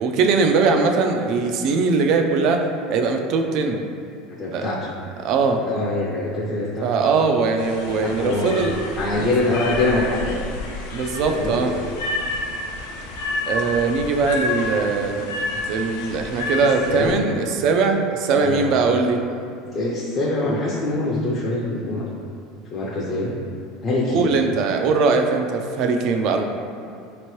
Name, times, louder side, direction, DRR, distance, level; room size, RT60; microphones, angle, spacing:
voice 1, 0.0-2.6 2.9-3.8 4.5-4.7 5.2-5.6 6.8-8.8 9.2-9.3 10.9-11.7 13.5-15.2 15.6-19.2 24.1-26.4, right 4 dB, 55° right, 4 dB, 0.4 m, -21 dB
voice 2, 4.3-4.9 5.6-7.3 8.0-8.5 9.0-10.4 11.3-11.8 16.9-17.2 18.4-18.7 19.7-22.1 22.7-23.4 23.8-24.3, left 2 dB, 35° left, -5 dB, 0.5 m, -24 dB
sound 1, 7.6-17.1, left 2 dB, 85° left, 0.6 m, -30 dB
4.3 x 2.9 x 3.1 m, 2.4 s
supercardioid pair, 135°, 0 cm